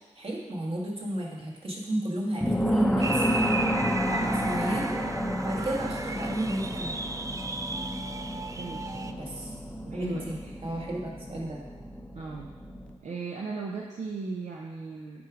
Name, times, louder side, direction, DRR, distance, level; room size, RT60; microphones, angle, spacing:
voice 1, 0.2-3.3 4.1-5.0 5.4-7.1 9.2-9.5 9.9-10.4 10.6-11.6, right 1 dB, 50° right, -2 dB, 1.7 m, -32 dB
sound 1, 2.4-12.9, equal, 5° left, 0.7 m, -31 dB
sound 2, 3.0-9.1, right 3 dB, 25° right, 0.4 m, -35 dB
voice 2, 8.5-9.2 9.9-10.5 12.1-12.5 13.0-15.2, right 4 dB, 70° right, -2 dB, 0.8 m, -37 dB
7.2 x 4.8 x 4.9 m, 1.3 s
cardioid pair, 75°, 12 cm